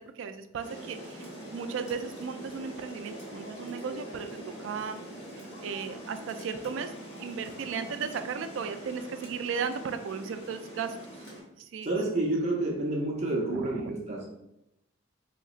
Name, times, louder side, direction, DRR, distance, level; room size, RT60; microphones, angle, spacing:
voice 1, 0.0-5.0 5.6-6.9 7.2-11.0 11.6-12.2 13.5-13.9, right 6 dB, 70° right, 9 dB, 0.3 m, -36 dB
Rain, 0.6-11.4, right 1 dB, 60° left, 1.3 m, -43 dB
voice 2, 11.8-14.4, right 2 dB, 35° right, -1 dB, 0.6 m, -29 dB
3.8 x 2.9 x 2.4 m, 0.83 s
head